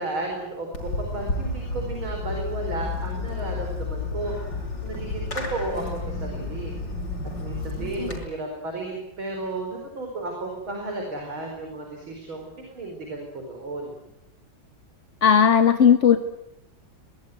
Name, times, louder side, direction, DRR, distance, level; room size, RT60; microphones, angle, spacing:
voice 1, 0.0-4.3 4.8-6.7 7.4-13.9, right 2 dB, 85° right, 2 dB, 5.5 m, -33 dB
Fireworks, 0.7-8.2, left 3 dB, 60° left, 6.1 m, -31 dB
voice 2, 15.2-16.2, left 7 dB, 40° left, 8 dB, 1.4 m, -16 dB
23.5 x 21.0 x 9.4 m, 0.81 s
omnidirectional pair, 2.2 m